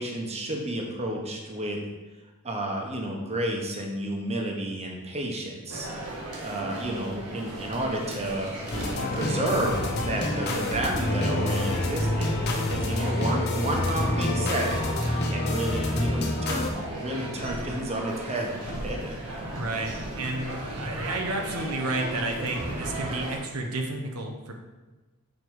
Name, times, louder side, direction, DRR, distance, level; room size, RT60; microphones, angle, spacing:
voice 1, 0.0-1.8 2.4-5.9 6.4-8.5 9.0-12.4 12.6-14.8 15.3-18.6 18.8-19.2, right 1 dB, 30° right, 1 dB, 1.0 m, -31 dB
sound 1, 5.7-23.4, right 1 dB, 90° right, 1.6 m, -36 dB
sound 2, 8.7-16.7, left 1 dB, 50° left, 1.1 m, -27 dB
voice 2, 19.5-24.5, right 2 dB, 70° right, 3 dB, 0.8 m, -31 dB
7.3 x 4.7 x 4.7 m, 1.2 s
head